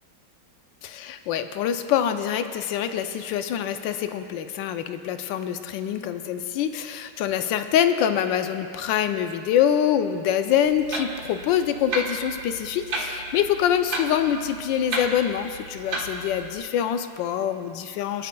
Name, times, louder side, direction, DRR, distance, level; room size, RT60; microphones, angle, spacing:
voice 1, 0.8-18.3, left 9 dB, 80° left, 9 dB, 1.3 m, -25 dB
Clock, 10.7-16.6, right 2 dB, 55° right, 1.8 m, -33 dB
26.0 x 9.4 x 2.3 m, 2.4 s
omnidirectional pair, 2.0 m